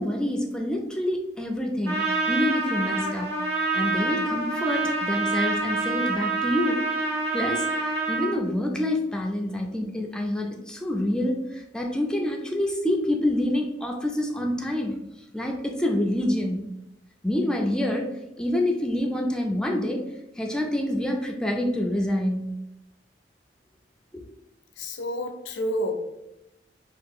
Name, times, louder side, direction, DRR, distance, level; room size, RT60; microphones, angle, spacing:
voice 1, 0.0-6.8 7.3-15.0 15.3-16.7 17.2-18.1 18.4-20.0 20.4-22.6 24.1-24.2, left 1 dB, 5° left, 1 dB, 0.3 m, -27 dB
Trumpet, 1.8-8.3, right 3 dB, 65° right, 0.9 m, -27 dB
voice 2, 24.8-26.0, equal, 80° left, 5 dB, 0.5 m, -29 dB
2.8 x 2.3 x 3.6 m, 0.90 s
head